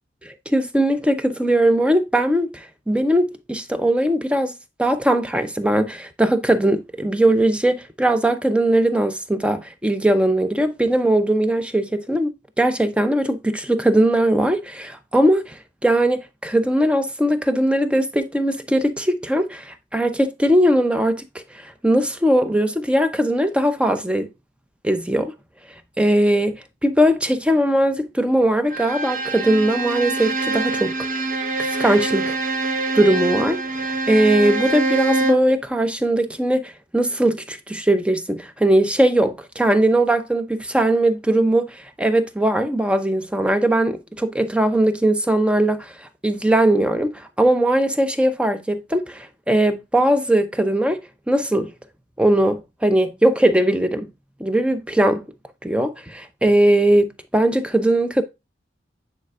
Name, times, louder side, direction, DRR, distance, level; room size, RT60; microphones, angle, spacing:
voice 1, 0.2-4.5 4.8-12.3 12.6-21.2 21.5-24.3 24.8-25.3 26.0-30.9 31.6-32.4 32.9-51.0 51.3-51.7 52.2-54.1 54.4-55.2 55.6-58.2, right 1 dB, 5° right, 0.6 m, -20 dB
Bowed string instrument, 28.7-35.5, right 2 dB, 45° right, 0.8 m, -24 dB
9.2 x 4.3 x 2.4 m
head